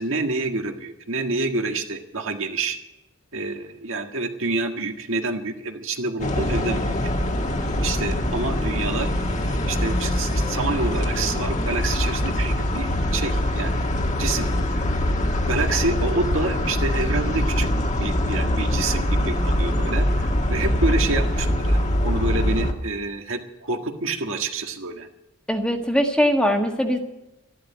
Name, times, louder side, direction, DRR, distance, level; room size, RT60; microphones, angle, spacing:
voice 1, 0.0-2.8 3.3-7.0 7.8-9.1 9.5-13.8 14.2-14.9 15.5-17.7 18.0-25.1, right 3 dB, 70° right, 4 dB, 1.7 m, -28 dB
sound 1, 6.2-22.7, left 1 dB, 35° left, 1.5 m, -23 dB
voice 2, 25.5-27.0, equal, 5° left, 3 dB, 1.6 m, -21 dB
13.5 x 11.5 x 8.0 m, 0.92 s
head